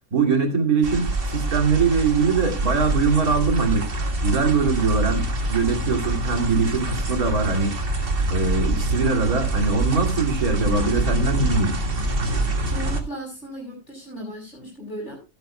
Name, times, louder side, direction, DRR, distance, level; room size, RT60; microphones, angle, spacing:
voice 1, 0.1-3.9 4.2-7.8 8.3-11.8, right 4 dB, 75° right, 4 dB, 3.1 m, -22 dB
sound 1, 0.8-13.0, right 2 dB, 40° right, 1.9 m, -25 dB
voice 2, 12.7-15.2, right 1 dB, 50° left, -2 dB, 6.1 m, -36 dB
16.0 x 12.5 x 2.2 m, 0.27 s
omnidirectional pair, 1.6 m